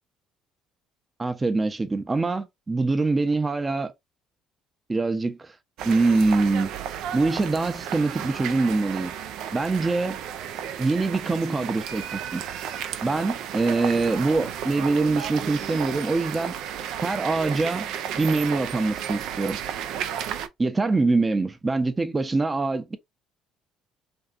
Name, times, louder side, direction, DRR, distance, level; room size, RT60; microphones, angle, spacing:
voice 1, 1.2-3.9 4.9-5.5 5.8-6.7 7.1-9.1 9.5-10.2 10.8-12.4 13.0-16.6 17.0-17.9 18.2-19.6 20.6-23.0, right 3 dB, 25° right, 0.5 m, -24 dB
sound 1, 5.8-20.5, right 9 dB, 70° right, 0.3 m, -33 dB
2.6 x 2.4 x 2.4 m
hypercardioid pair, 65°, 0 cm